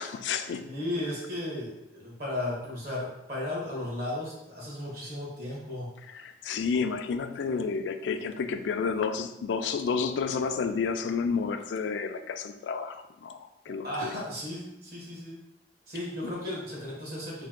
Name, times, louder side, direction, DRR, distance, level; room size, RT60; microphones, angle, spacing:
voice 1, 0.0-0.7 6.1-13.4 13.7-14.1 16.2-16.3, left 5 dB, 85° left, 9 dB, 0.3 m, -30 dB
voice 2, 0.6-5.9 13.7-15.4 15.9-17.5, left 1 dB, 55° right, -4 dB, 1.4 m, -35 dB
3.4 x 2.7 x 3.6 m, 0.85 s
head